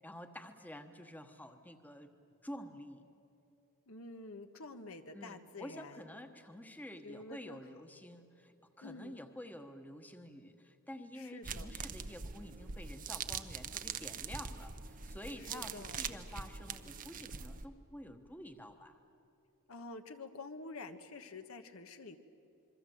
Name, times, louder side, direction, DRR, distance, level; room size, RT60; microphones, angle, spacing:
voice 1, 0.0-2.1 2.4-3.0 5.1-19.0, left 1 dB, 10° left, 7 dB, 1.1 m, -49 dB
voice 2, 3.9-6.1 7.0-7.6 8.8-9.2 11.1-11.7 15.4-16.1 19.7-22.2, left 3 dB, 75° left, 7 dB, 1.3 m, -48 dB
sound 1, 11.4-17.7, right 6 dB, 40° right, 0.8 m, -43 dB
27.0 x 23.0 x 7.8 m, 2.7 s
head